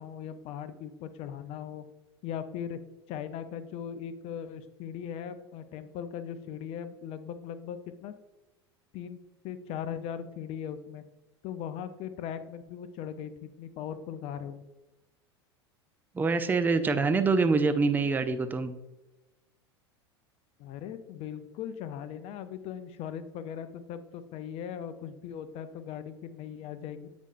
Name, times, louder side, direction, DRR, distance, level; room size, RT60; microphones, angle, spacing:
voice 1, 0.0-1.8 2.2-2.8 3.1-8.1 8.9-9.2 9.4-11.0 11.4-14.6 20.6-27.1, left 8 dB, 45° left, 11 dB, 0.6 m, -39 dB
voice 2, 16.1-18.7, right 4 dB, 15° right, 9 dB, 0.5 m, -25 dB
8.1 x 5.1 x 2.6 m, 1.0 s
hypercardioid pair, 85°, 14 cm